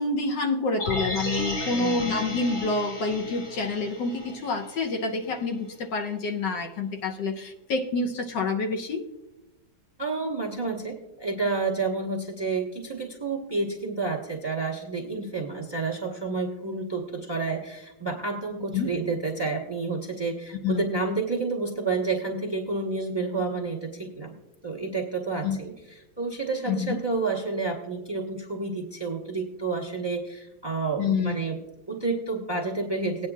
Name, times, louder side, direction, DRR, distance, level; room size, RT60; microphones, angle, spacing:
voice 1, 0.0-9.0 18.7-18.9 20.6-20.8 25.4-25.6 26.7-27.0 31.0-31.3, left 3 dB, 70° left, 4 dB, 1.4 m, -27 dB
sound 1, 0.8-5.0 5.3-5.4, left 1 dB, 45° left, 4.1 m, -34 dB
voice 2, 1.7-2.1 10.0-24.3 24.6-31.6 31.9-33.3, right 3 dB, 15° right, -1 dB, 0.9 m, -30 dB
19.5 x 9.1 x 2.4 m, 1.0 s
omnidirectional pair, 2.1 m